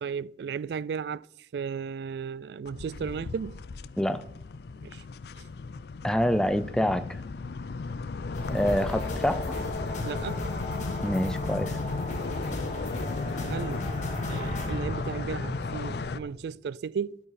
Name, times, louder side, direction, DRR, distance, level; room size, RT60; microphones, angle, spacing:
voice 1, 0.0-1.3 1.5-3.6 4.8-5.0 10.0-10.4 13.4-13.8 14.3-17.2, right 6 dB, 65° right, 0.3 m, -34 dB
sound 1, 2.7-16.2, left 4 dB, 60° left, 0.4 m, -36 dB
voice 2, 6.0-7.2 8.5-9.4 11.0-11.8, equal, 5° left, 0.5 m, -26 dB
sound 2, 8.3-16.2, left 1 dB, 40° left, 2.5 m, -35 dB
12.5 x 8.8 x 4.1 m
head